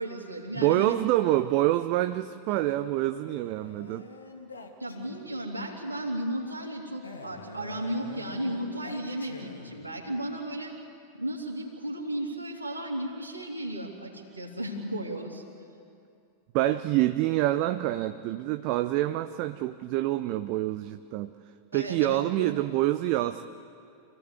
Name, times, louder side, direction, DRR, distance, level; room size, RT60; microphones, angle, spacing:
voice 1, 0.0-0.9 4.8-10.7 11.2-15.4 21.7-22.5, right 1 dB, 85° right, -2 dB, 3.2 m, -34 dB
voice 2, 0.6-4.1 16.5-21.3 21.7-23.4, right 15 dB, 45° right, 10 dB, 0.6 m, -26 dB
Male speech man speaking, 2.5-5.5 7.0-10.0, left 3 dB, 80° left, 2.0 m, -45 dB
26.5 x 16.5 x 8.2 m, 2.5 s
figure-of-eight pair, 90°, 0 cm